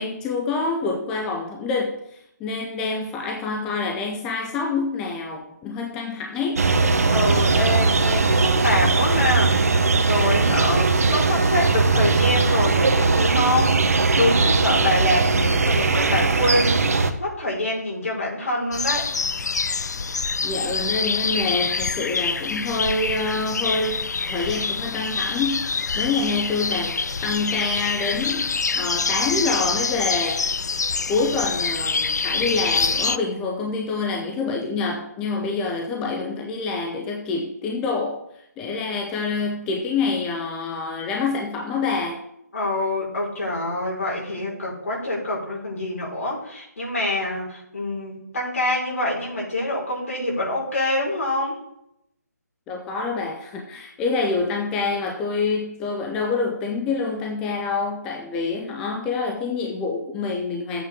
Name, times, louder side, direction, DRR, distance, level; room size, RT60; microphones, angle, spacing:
voice 1, 0.0-6.6 20.4-30.4 31.1-38.2 38.6-42.2 52.7-60.8, left 4 dB, 5° left, 1 dB, 0.4 m, -26 dB
sound 1, 6.6-17.1, right 3 dB, 60° right, 1.1 m, -19 dB
voice 2, 7.1-19.1 42.5-51.6, left 1 dB, 60° left, -3 dB, 4.9 m, -25 dB
sound 2, 18.7-33.2, left 4 dB, 75° left, 0.5 m, -26 dB
12.5 x 8.3 x 3.7 m, 0.79 s
hypercardioid pair, 165°, 9 cm